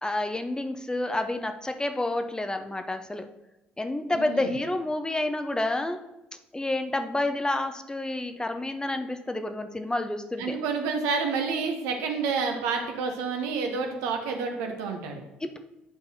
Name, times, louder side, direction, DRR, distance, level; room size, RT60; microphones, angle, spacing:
voice 1, 0.0-3.3 3.8-6.0 6.5-10.6 15.4-15.6, left 2 dB, 15° left, 7 dB, 0.6 m, -29 dB
voice 2, 4.1-4.5 10.4-15.2, right 5 dB, 70° right, 4 dB, 1.0 m, -29 dB
8.8 x 5.5 x 2.8 m, 0.95 s
figure-of-eight pair, 50°, 5 cm